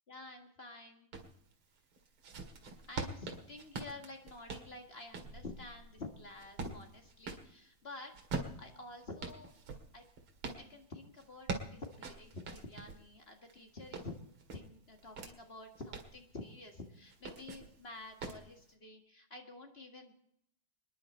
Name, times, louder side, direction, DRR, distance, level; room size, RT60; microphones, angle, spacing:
voice 1, 0.1-1.1 2.9-8.1 8.6-9.5 9.9-10.0 10.6-14.2 14.5-20.1, left 2 dB, 30° left, 4 dB, 1.8 m, -49 dB
sound 1, 1.1-1.3 1.9-7.5 8.1-10.6 11.2-13.0 13.5-15.3 15.7-16.2 17.1-17.7 18.2-18.5, right 3 dB, 85° right, 2.8 m, -43 dB
26.5 x 10.5 x 4.3 m, 0.72 s
omnidirectional pair, 2.3 m